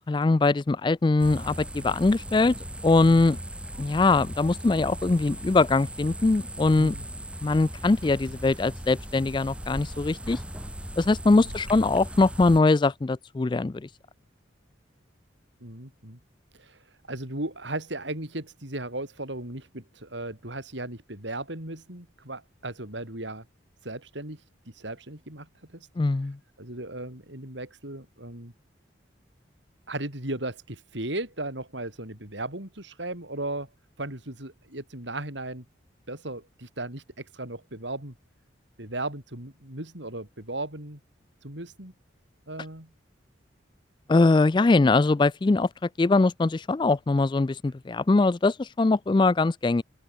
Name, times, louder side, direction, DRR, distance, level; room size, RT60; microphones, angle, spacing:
voice 1, 0.1-2.6 2.8-3.4 3.8-6.9 7.4-10.4 11.0-13.9 26.0-26.4 44.1-45.7 46.0-49.8, left 3 dB, 25° left, 0.3 m, -22 dB
sound 1, 1.2-12.6, right 1 dB, 5° right, 3.8 m, -38 dB
voice 2, 11.3-11.6 15.6-16.2 16.5-16.8 17.1-23.4 23.8-24.4 24.7-25.9 26.6-28.5 29.9-33.7 34.0-35.6 36.1-38.1 38.8-41.0 41.4-41.9 42.5-42.9, right 2 dB, 70° right, 6.3 m, -36 dB
open air
head